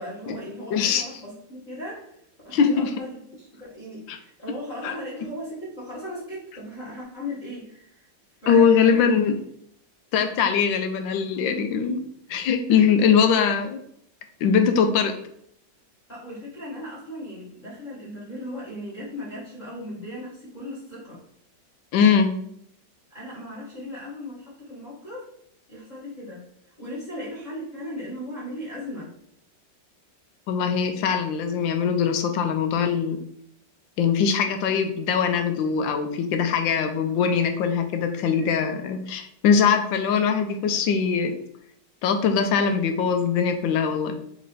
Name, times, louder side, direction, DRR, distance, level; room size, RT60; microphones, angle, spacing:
voice 1, 0.0-2.1 2.4-8.1 8.4-9.3 16.1-21.2 23.1-25.3 25.7-29.1 38.4-38.5, left 1 dB, 25° left, -7 dB, 1.5 m, -37 dB
voice 2, 0.7-1.0 2.5-2.9 4.1-4.2 4.8-4.9 8.5-9.4 10.1-12.0 12.3-13.8 14.4-15.1 21.9-22.3 30.5-33.2 34.0-41.3 42.0-44.1, left 6 dB, 90° left, 6 dB, 1.3 m, -21 dB
4.3 x 3.0 x 4.0 m, 0.69 s
omnidirectional pair, 2.0 m